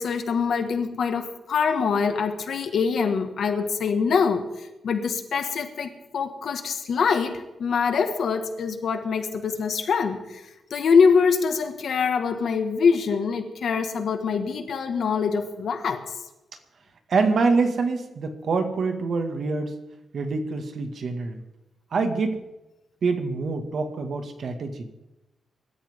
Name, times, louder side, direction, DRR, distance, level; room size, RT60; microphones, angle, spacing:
voice 1, 0.0-10.4 10.7-16.1, left 5 dB, 65° left, 6 dB, 1.8 m, -24 dB
voice 2, 17.1-19.7 20.1-21.4 21.9-22.4 23.0-24.9, right 4 dB, 55° right, 6 dB, 2.0 m, -25 dB
24.5 x 13.5 x 3.8 m, 0.96 s
wide cardioid pair, 170°, 0 cm